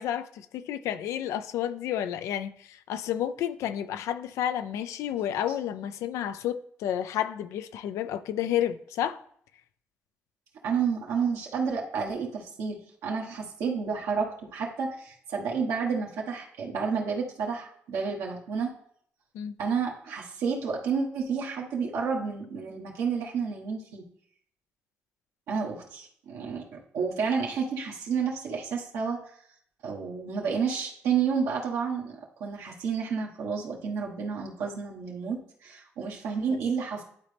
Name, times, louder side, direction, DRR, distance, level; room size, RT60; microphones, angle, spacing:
voice 1, 0.0-9.2 19.3-19.6, left 10 dB, 85° left, 0.4 m, -31 dB
voice 2, 10.6-18.7 19.6-24.0 25.5-29.2 29.8-37.0, right 6 dB, 90° right, 1.3 m, -30 dB
11.5 x 4.0 x 3.4 m
supercardioid pair, 70°, 5 cm